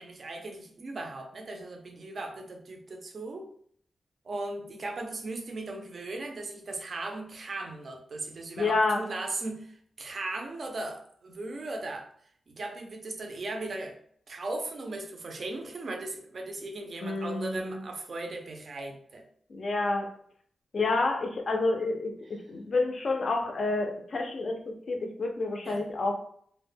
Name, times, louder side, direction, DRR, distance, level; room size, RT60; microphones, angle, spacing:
voice 1, 0.0-3.5 4.2-12.1 12.5-14.0 14.3-19.2 25.6-25.8, right 2 dB, 40° right, 3 dB, 0.4 m, -37 dB
voice 2, 8.6-9.0 17.0-17.8 19.5-20.1 20.7-26.1, left 3 dB, 45° left, 3 dB, 0.4 m, -29 dB
2.1 x 2.0 x 3.3 m, 0.63 s
wide cardioid pair, 180°, 0 cm